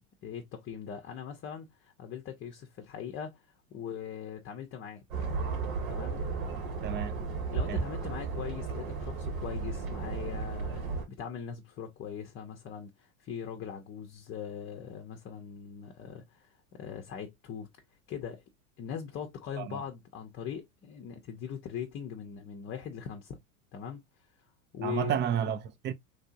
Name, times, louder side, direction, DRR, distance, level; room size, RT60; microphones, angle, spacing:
voice 1, 0.0-3.4 3.7-5.0 5.9-6.2 7.5-17.7 18.1-18.4 18.8-23.4 23.7-24.0 24.7-25.1, left 8 dB, 30° left, 0.7 m, -41 dB
sound 1, 5.1-11.0, right 4 dB, 70° right, 1.7 m, -34 dB
voice 2, 24.8-25.9, right 9 dB, 25° right, 0.5 m, -31 dB
3.3 x 2.7 x 2.5 m
hypercardioid pair, 95°, 41 cm